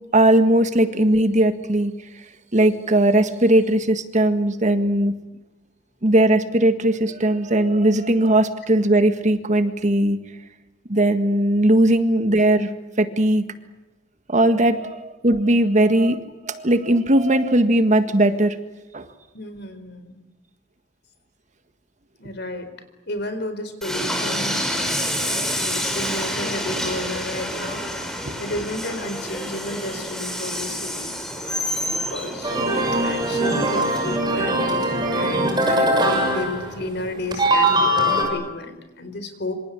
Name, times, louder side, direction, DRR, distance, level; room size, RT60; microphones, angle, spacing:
voice 1, 0.1-1.9 2.5-5.1 6.0-10.2 10.9-12.7 13.0-13.5 14.3-18.6 18.9-19.1 25.3-25.4 28.3-28.4, right 1 dB, 40° right, 9 dB, 1.8 m, -18 dB
voice 2, 19.3-20.2 22.2-22.7 23.1-27.8 28.4-31.1 31.9-39.5, left 2 dB, 60° left, 10 dB, 4.2 m, -32 dB
Train, 23.8-34.2, equal, 5° left, 4.9 m, -28 dB
sound 1, 32.4-37.0 37.3-38.2, right 1 dB, 25° right, 6.7 m, -21 dB
27.0 x 25.5 x 8.5 m, 1.0 s
head